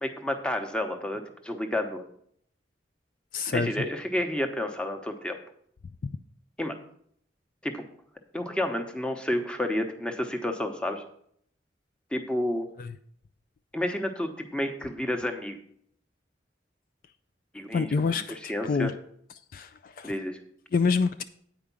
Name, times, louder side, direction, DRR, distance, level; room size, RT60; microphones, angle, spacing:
voice 1, 0.0-2.0 3.5-5.4 6.6-6.8 7.6-7.8 8.3-11.0 12.1-12.7 13.7-15.6 17.5-18.2 18.5-18.9 20.0-20.4, left 1 dB, 5° left, 5 dB, 0.9 m, -30 dB
voice 2, 3.3-3.7 12.8-12.9 17.7-18.9 19.5-20.1 20.7-21.2, left 5 dB, 50° left, 11 dB, 0.3 m, -27 dB
9.0 x 5.0 x 7.0 m, 0.67 s
head